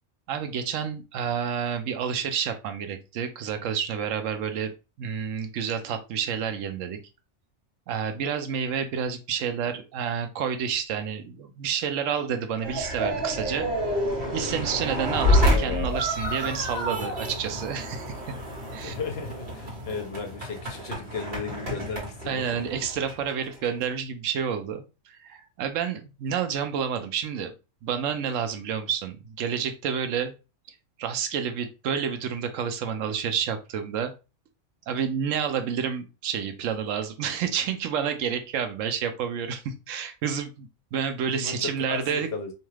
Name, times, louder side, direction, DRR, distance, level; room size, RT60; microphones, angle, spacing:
voice 1, 0.3-4.7 5.0-7.0 7.9-13.7 14.3-18.2 18.7-18.9 22.3-27.5 27.8-30.3 31.0-34.1 34.9-42.3, right 7 dB, 85° right, 7 dB, 0.9 m, -29 dB
sound 1, 12.6-23.9, left 1 dB, 50° right, 1.4 m, -28 dB
voice 2, 15.5-15.9 18.7-22.5 41.3-42.5, left 4 dB, 60° left, 4 dB, 0.8 m, -35 dB
2.7 x 2.3 x 3.0 m, 0.29 s
omnidirectional pair, 1.3 m